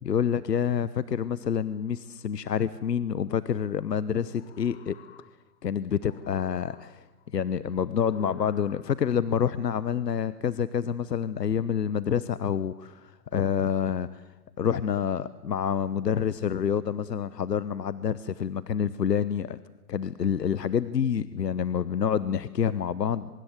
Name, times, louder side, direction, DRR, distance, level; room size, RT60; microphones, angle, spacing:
voice 1, 0.0-5.0 5.6-7.0 7.3-14.2 14.6-19.6 19.9-23.3, left 8 dB, 85° left, 17 dB, 1.1 m, -27 dB
sound 1, 4.2-5.6 6.0-7.2 8.0-9.3, left 11 dB, 45° left, 1.8 m, -50 dB
24.5 x 22.5 x 8.1 m, 1.2 s
hypercardioid pair, 140°, 48 cm